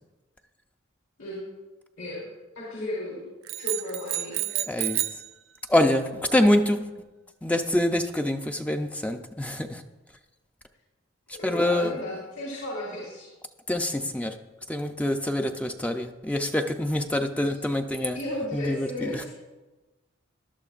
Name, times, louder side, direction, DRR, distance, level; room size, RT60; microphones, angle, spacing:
voice 1, 2.5-3.3 3.5-4.4 11.3-13.3 17.4-17.5 18.1-19.3, left 1 dB, 80° left, -6 dB, 4.3 m, -34 dB
sound 1, 3.5-5.3, right 15 dB, 75° right, 0.5 m, -30 dB
voice 2, 4.5-5.0 5.7-6.9 7.4-9.8 11.4-11.9 13.7-14.4 14.7-18.2 18.5-19.2, left 1 dB, 5° left, 5 dB, 0.5 m, -25 dB
18.5 x 12.0 x 2.5 m, 1.2 s
head